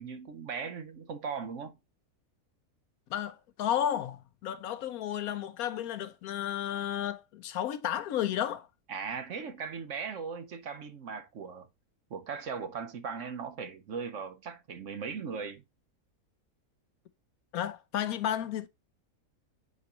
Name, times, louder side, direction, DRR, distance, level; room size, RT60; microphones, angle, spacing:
voice 1, 0.0-1.7 8.9-11.7 12.1-15.6, right 5 dB, 60° right, 1.0 m, -38 dB
voice 2, 3.1-8.7 17.5-18.7, left 10 dB, 75° left, 1.1 m, -32 dB
9.6 x 4.1 x 3.0 m
omnidirectional pair, 1.6 m